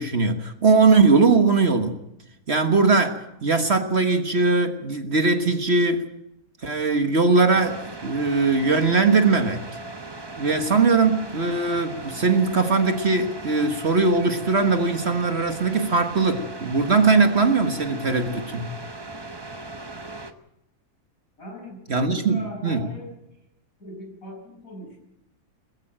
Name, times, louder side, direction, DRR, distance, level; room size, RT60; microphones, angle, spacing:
voice 1, 0.0-2.0 2.5-6.1 6.6-9.6 10.4-18.7 21.9-22.9, right 4 dB, 45° right, 7 dB, 1.6 m, -20 dB
sound 1, 7.5-20.3, right 2 dB, 20° right, 1.0 m, -38 dB
voice 2, 21.4-23.1 23.8-25.0, equal, 65° left, 0 dB, 7.7 m, -40 dB
21.0 x 15.0 x 8.9 m, 0.86 s
omnidirectional pair, 1.6 m